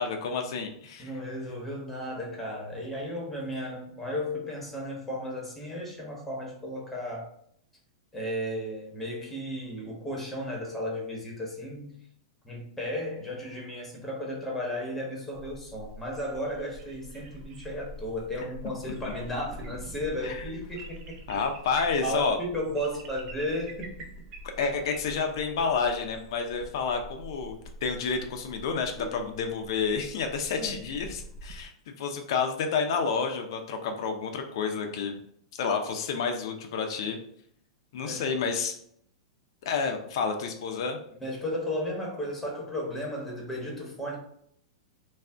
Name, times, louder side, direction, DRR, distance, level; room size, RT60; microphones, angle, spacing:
voice 1, 0.0-1.1 18.8-18.9 20.2-20.5 21.3-22.4 24.6-27.6 27.8-35.2 35.6-37.2 37.9-38.8 39.6-41.0, left 5 dB, 65° left, 4 dB, 0.5 m, -29 dB
voice 2, 1.0-7.3 8.1-12.0 12.4-21.1 22.0-24.0 29.0-29.1 30.6-30.9 38.0-38.3 41.2-44.2, equal, 5° left, -2 dB, 0.9 m, -34 dB
sound 1, 15.3-31.7, right 1 dB, 40° right, 0.5 m, -46 dB
2.5 x 2.0 x 3.3 m, 0.67 s
hypercardioid pair, 120°, 3 cm